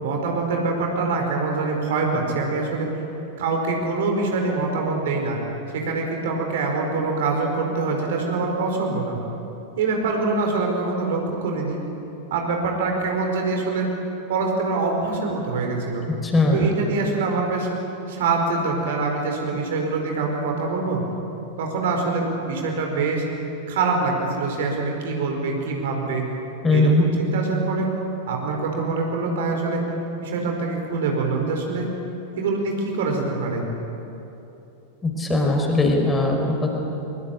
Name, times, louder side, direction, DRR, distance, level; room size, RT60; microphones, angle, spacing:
voice 1, 0.0-2.9 3.4-5.4 5.7-9.2 9.8-11.8 12.3-13.9 14.3-16.0 16.5-17.7 18.1-21.0 21.6-23.2 23.7-26.3 26.7-27.9 28.3-29.9 30.2-31.9 32.3-33.6, right 3 dB, 55° right, 2 dB, 4.7 m, -24 dB
voice 2, 16.2-16.7 26.6-27.1 35.0-36.7, left 2 dB, 15° left, 1 dB, 5.1 m, -19 dB
23.5 x 23.0 x 8.6 m, 3.0 s
figure-of-eight pair, 90°, 0 cm